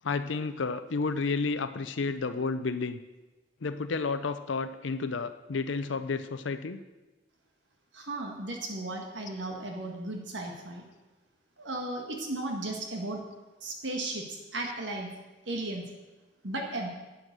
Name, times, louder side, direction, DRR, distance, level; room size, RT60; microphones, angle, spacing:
voice 1, 0.0-3.0 3.6-6.8, left 4 dB, 85° left, 10 dB, 0.6 m, -31 dB
voice 2, 7.9-10.8 11.6-13.2 13.6-15.1 15.4-15.9 16.4-16.9, right 2 dB, 75° right, 1 dB, 1.7 m, -35 dB
11.0 x 9.3 x 6.7 m, 1.1 s
head